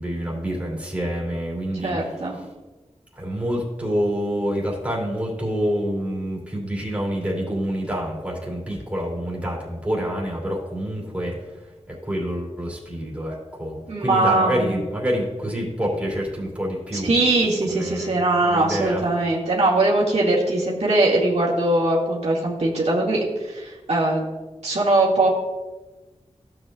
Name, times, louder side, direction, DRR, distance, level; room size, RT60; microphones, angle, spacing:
voice 1, 0.0-2.4 3.1-17.1 17.7-18.2 18.4-19.0, equal, 10° right, -4 dB, 3.0 m, -27 dB
voice 2, 1.8-2.4 13.9-14.8 17.0-24.2 24.6-25.3, right 2 dB, 70° right, -4 dB, 2.2 m, -21 dB
15.0 x 7.9 x 2.5 m, 1.2 s
wide cardioid pair, 105°, 11 cm